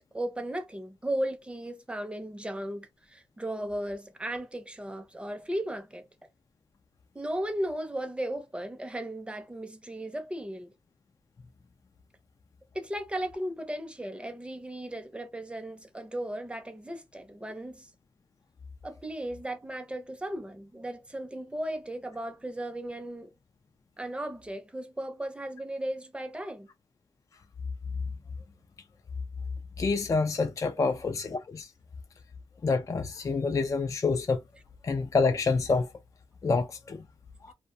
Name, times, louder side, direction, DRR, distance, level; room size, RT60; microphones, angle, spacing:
voice 1, 0.1-6.1 7.1-10.7 12.7-17.9 18.8-23.3 24.0-26.7 30.8-30.9, right 1 dB, 10° right, 0.6 m, -36 dB
voice 2, 29.8-31.7 32.6-34.4 34.8-35.9 36.4-37.0 37.4-37.5, left 4 dB, 30° left, 0.3 m, -27 dB
2.3 x 2.1 x 2.6 m
wide cardioid pair, 95°, 10 cm